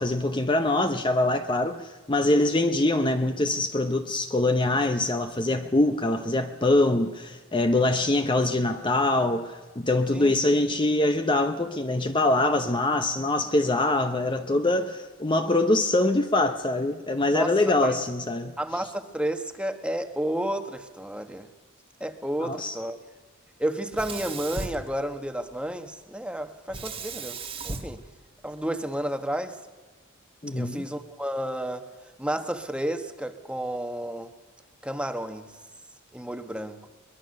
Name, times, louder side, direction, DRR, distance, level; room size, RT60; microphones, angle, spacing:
voice 1, 0.0-18.5 22.4-22.8 30.4-30.8, left 2 dB, 20° left, 7 dB, 0.8 m, -24 dB
voice 2, 18.6-21.5 22.0-23.0 23.6-28.0 28.4-29.6 30.6-31.8 32.2-34.3 34.8-35.5 36.1-36.9, right 1 dB, 5° right, 7 dB, 1.2 m, -31 dB
Sink (filling or washing), 23.9-25.6 26.7-29.0, right 3 dB, 25° right, 1.4 m, -37 dB
22.5 x 21.5 x 6.5 m, 1.3 s
head